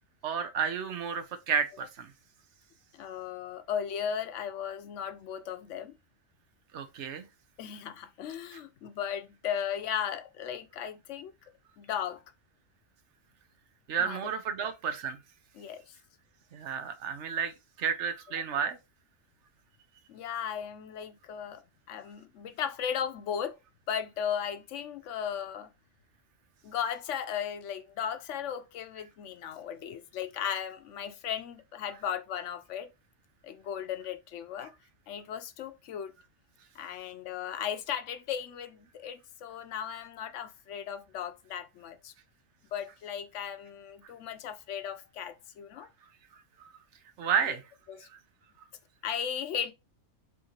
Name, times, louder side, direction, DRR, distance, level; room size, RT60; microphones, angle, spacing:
voice 1, 0.2-2.1 6.7-7.3 13.9-15.2 16.5-18.8 47.2-47.6, right 7 dB, 70° right, 0.9 m, -31 dB
voice 2, 2.9-5.9 7.6-11.3 11.8-12.2 14.0-14.2 14.6-14.7 15.6-16.0 20.1-21.6 21.9-23.6 23.9-25.7 26.6-32.9 33.4-34.7 35.1-36.1 36.7-42.1 42.7-45.9 47.5-47.6 47.9-48.1 49.0-49.7, left 8 dB, 75° left, 0.9 m, -36 dB
4.6 x 3.1 x 2.8 m
omnidirectional pair, 1.3 m